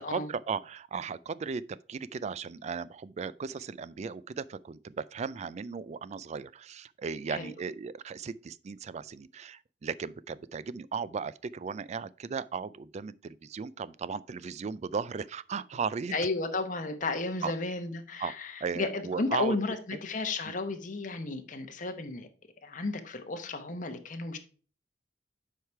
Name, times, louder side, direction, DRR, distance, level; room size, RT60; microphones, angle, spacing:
voice 1, 0.0-16.2 17.4-17.5 18.2-18.3 18.6-19.6 20.5-20.6, right 5 dB, 40° right, 0.3 m, -36 dB
voice 2, 16.1-22.3 22.6-24.4, left 3 dB, 45° left, 1.0 m, -33 dB
8.0 x 4.8 x 4.5 m
head